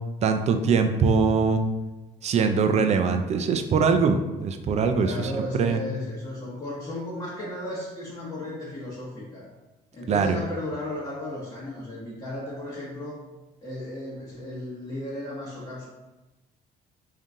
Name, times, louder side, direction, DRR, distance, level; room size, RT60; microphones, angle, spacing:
voice 1, 0.2-1.6 2.2-5.8 10.1-10.4, right 5 dB, 40° right, 7 dB, 0.4 m, -22 dB
voice 2, 5.0-9.4 9.9-13.2 13.6-15.8, left 1 dB, 25° left, -7 dB, 1.0 m, -35 dB
3.7 x 2.7 x 3.6 m, 1.1 s
cardioid pair, 110°, 17 cm